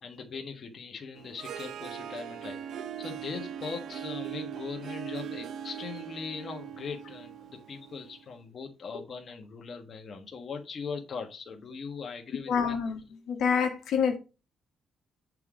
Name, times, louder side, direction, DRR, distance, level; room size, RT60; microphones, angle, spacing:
voice 1, 0.0-12.7, left 5 dB, 45° left, 1.4 m, -40 dB
Harp, 1.1-8.2, right 9 dB, 70° right, 0.7 m, -40 dB
voice 2, 12.5-14.2, left 6 dB, 75° left, 1.4 m, -27 dB
7.8 x 3.8 x 4.9 m
cardioid pair, 90°, 0 cm